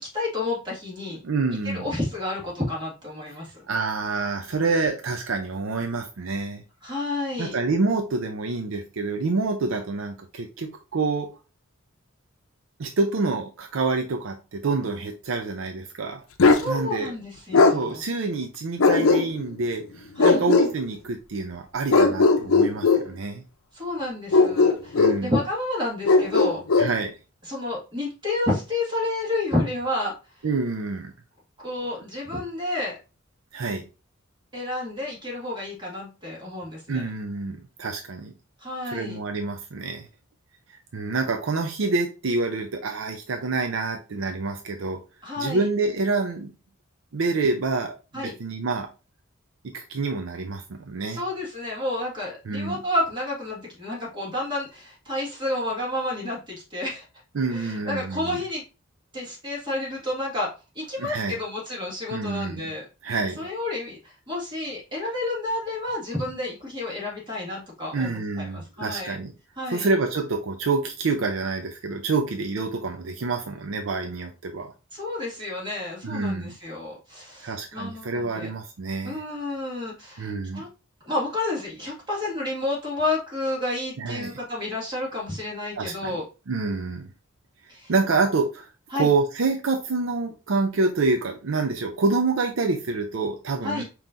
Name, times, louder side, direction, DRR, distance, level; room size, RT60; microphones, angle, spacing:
voice 1, 0.1-1.2 1.7-3.6 6.8-7.6 16.5-18.0 20.2-20.4 23.7-26.6 27.5-30.1 31.6-33.0 34.5-37.1 38.6-39.2 45.2-45.7 48.1-48.4 51.1-57.1 57.5-58.6 59.1-60.5 60.8-62.9 63.4-69.2 69.6-69.9 74.9-78.5 79.0-80.7 81.0-86.2 87.7-87.9 88.9-89.1 93.6-93.8, left 2 dB, 20° right, -3 dB, 1.8 m, -30 dB
voice 2, 1.1-1.9 3.7-6.6 7.4-11.3 12.8-16.2 16.7-17.1 17.5-23.4 24.9-25.3 26.8-27.1 30.4-31.1 33.5-33.8 36.9-38.3 38.9-40.1 40.9-45.0 45.4-46.5 47.1-48.9 49.7-51.2 52.5-52.8 57.3-58.4 61.0-61.4 62.1-62.7 63.0-63.5 67.9-69.3 69.7-74.7 76.0-76.5 77.4-79.2 80.2-80.7 84.0-84.3 85.8-86.2 86.5-87.1 87.9-88.7 88.9-93.8, right 3 dB, 70° right, 5 dB, 0.5 m, -27 dB
Bark, 16.4-16.7 17.5-17.8 18.8-19.5 20.2-20.7 21.9-23.0 24.3-25.2 26.0-26.9, left 3 dB, 80° left, 0.6 m, -17 dB
5.4 x 3.0 x 2.5 m, 0.31 s
head